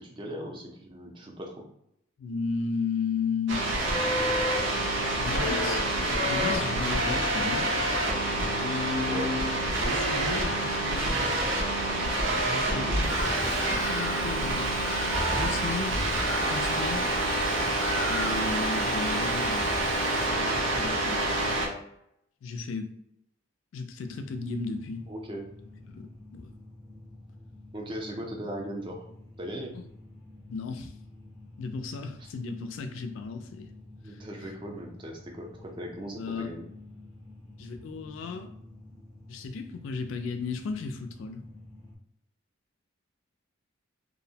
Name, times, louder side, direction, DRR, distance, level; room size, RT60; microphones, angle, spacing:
voice 1, 0.0-1.7 9.1-9.3 12.7-13.0 25.1-25.6 27.7-29.1 29.4-29.8 32.2-32.3 34.0-36.6, right 1 dB, 25° right, 1 dB, 0.4 m, -38 dB
voice 2, 2.2-3.7 5.2-5.8 6.2-7.7 8.5-9.5 9.8-11.4 12.4-12.9 13.6-14.8 15.3-16.0 16.5-17.1 18.1-21.5 22.4-22.9 23.7-25.0 25.9-26.0 26.3-26.5 30.5-30.9 31.6-33.7 34.0-34.2 36.2-36.5 37.6-38.5 39.3-41.5, left 4 dB, 75° left, 7 dB, 0.3 m, -34 dB
sound 1, 3.5-21.7, right 1 dB, 70° right, 0.6 m, -27 dB
Bird vocalization bird call bird song, 13.0-20.3, equal, 90° right, 1.2 m, -37 dB
sound 2, 24.0-42.0, left 2 dB, 20° left, 0.6 m, -49 dB
2.5 x 2.0 x 2.7 m, 0.76 s
head